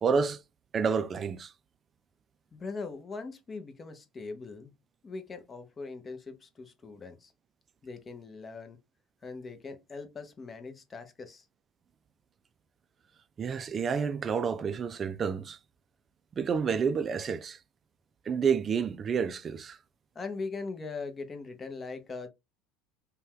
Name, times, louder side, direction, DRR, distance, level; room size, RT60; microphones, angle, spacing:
voice 1, 0.0-0.4 0.7-1.5 13.4-15.6 16.4-17.6 18.3-19.8, right 6 dB, 35° right, 0.3 m, -29 dB
voice 2, 2.5-4.7 5.0-7.3 7.8-8.8 9.2-11.4 20.1-22.3, left 4 dB, 25° left, 0.7 m, -41 dB
2.7 x 2.2 x 3.4 m
figure-of-eight pair, 70°, 0 cm